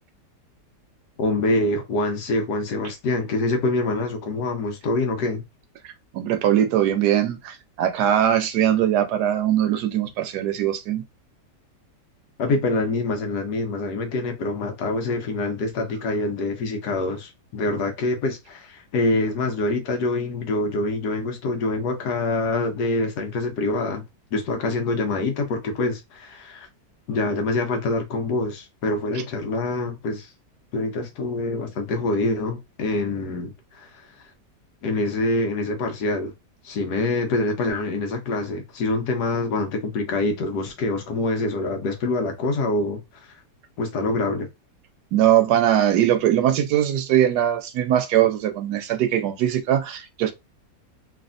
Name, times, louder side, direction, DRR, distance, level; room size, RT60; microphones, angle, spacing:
voice 1, 1.2-5.4 12.4-24.0 24.3-26.7 27.1-30.3 30.7-34.1 34.8-36.3 36.6-43.3 43.8-44.5, left 2 dB, 70° left, 1.3 m, -25 dB
voice 2, 6.1-11.0 45.1-50.3, right 11 dB, 75° right, 1.1 m, -21 dB
3.3 x 2.4 x 2.5 m
omnidirectional pair, 1.8 m